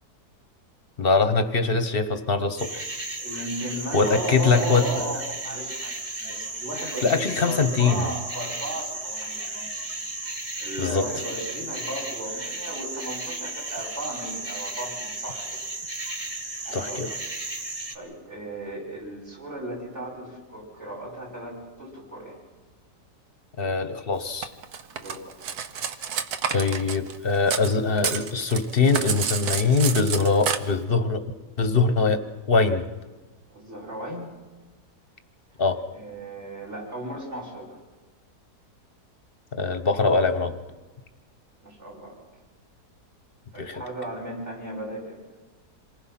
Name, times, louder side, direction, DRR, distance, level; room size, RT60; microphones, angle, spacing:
voice 1, 1.0-2.8 3.9-5.1 7.0-8.1 10.8-11.0 16.7-17.1 23.6-24.5 26.5-31.2 31.6-32.2 32.5-32.9 35.6-35.8 39.5-40.6 43.5-43.8, left 4 dB, 40° left, 10 dB, 1.0 m, -22 dB
sound 1, 2.6-18.0, right 2 dB, 25° right, 1.2 m, -34 dB
voice 2, 3.2-9.9 10.6-15.6 16.7-17.0 17.9-22.4 24.9-25.3 33.5-34.3 35.9-37.8 41.6-42.2 43.5-45.2, right 1 dB, 45° right, -1 dB, 5.7 m, -35 dB
Cutlery silverware, 24.4-27.7 28.0-30.6, right 7 dB, 75° right, 1.5 m, -29 dB
27.0 x 19.5 x 5.8 m, 1.2 s
omnidirectional pair, 1.7 m